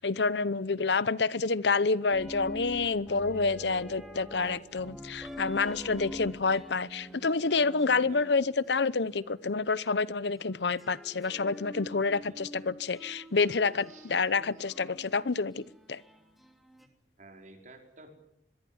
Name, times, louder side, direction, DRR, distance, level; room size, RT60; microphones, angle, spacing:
voice 1, 0.0-16.0, left 4 dB, 80° left, 18 dB, 0.8 m, -28 dB
sound 1, 2.1-9.9 10.4-16.9, left 1 dB, ahead, 2.9 m, -46 dB
voice 2, 8.0-8.5 12.2-12.6 13.9-14.1 17.2-18.1, right 2 dB, 45° right, 3 dB, 5.2 m, -53 dB
25.5 x 22.5 x 7.2 m, 0.79 s
head